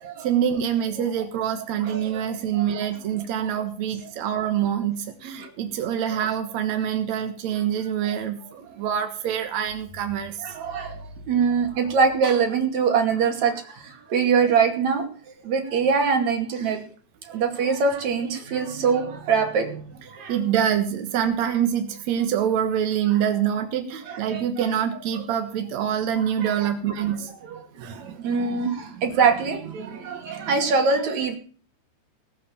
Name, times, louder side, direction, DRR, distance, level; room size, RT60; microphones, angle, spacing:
voice 1, 0.2-10.4 20.3-27.3 27.8-28.2, right 9 dB, 75° right, 6 dB, 1.6 m, -25 dB
voice 2, 1.8-2.4 3.4-3.5 5.4-5.5 6.2-6.3 8.0-8.2 10.4-11.0 11.3-15.1 15.4-16.8 17.3-20.3 24.1-24.7 25.1-25.2 26.4-26.7 27.0-31.4, right 5 dB, 45° right, 3 dB, 3.2 m, -24 dB
19.5 x 7.1 x 7.2 m, 0.43 s
omnidirectional pair, 5.4 m